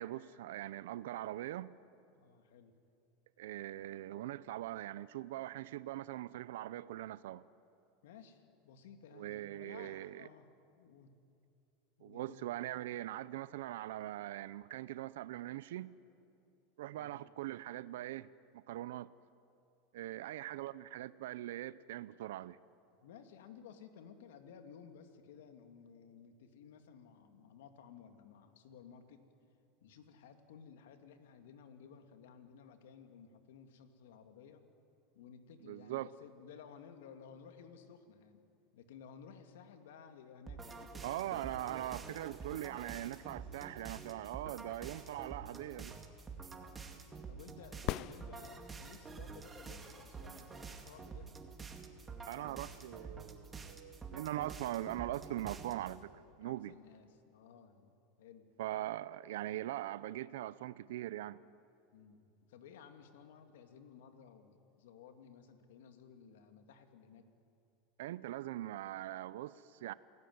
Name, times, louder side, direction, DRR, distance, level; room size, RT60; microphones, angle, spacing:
voice 1, 0.0-1.8 3.4-7.4 9.1-10.3 12.0-16.0 16.8-18.3 18.5-19.1 19.9-22.6 35.6-36.1 41.0-46.0 52.3-56.1 56.4-56.7 58.6-61.4 68.0-69.9, right 14 dB, 85° right, 0.6 m, -41 dB
voice 2, 2.1-2.8 8.0-10.5 10.8-11.1 12.0-12.4 16.9-17.2 23.0-29.2 29.8-34.7 35.1-38.4 38.7-41.7 46.4-46.8 47.3-51.4 56.4-58.5 61.9-67.3, left 7 dB, 85° left, 2.3 m, -56 dB
sound 1, 40.5-56.0, right 5 dB, 15° right, 2.2 m, -48 dB
sound 2, 47.8-49.0 52.9-53.0, left 14 dB, 50° left, 0.6 m, -40 dB
28.5 x 18.0 x 9.5 m
supercardioid pair, 140°, 0 cm